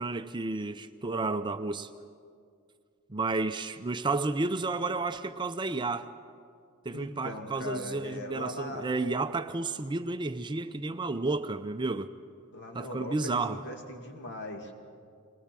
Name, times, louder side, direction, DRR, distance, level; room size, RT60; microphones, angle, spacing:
voice 1, 0.0-1.9 3.1-6.1 6.8-12.1 12.7-13.6, right 3 dB, 20° right, 9 dB, 0.5 m, -31 dB
voice 2, 6.9-8.9 12.5-14.7, left 1 dB, 55° left, 3 dB, 2.2 m, -40 dB
21.0 x 19.5 x 7.5 m, 2.3 s
head